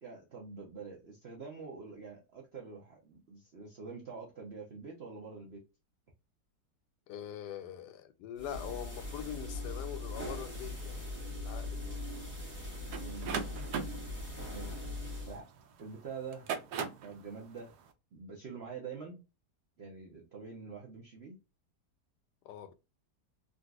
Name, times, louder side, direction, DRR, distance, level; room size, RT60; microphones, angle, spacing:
voice 1, 0.0-5.6 12.9-13.9 14.5-15.5 15.8-16.5 17.0-17.7 18.1-19.2 19.8-21.4, right 5 dB, 50° right, 0.8 m, -46 dB
voice 2, 7.1-11.0 11.4-12.2 22.4-22.7, left 10 dB, 80° left, 1.2 m, -43 dB
sound 1, 8.4-15.4, left 2 dB, 10° right, 1.0 m, -40 dB
sound 2, 12.9-15.6 16.2-17.1, right 6 dB, 80° right, 1.1 m, -38 dB
3.9 x 2.5 x 2.3 m
omnidirectional pair, 1.8 m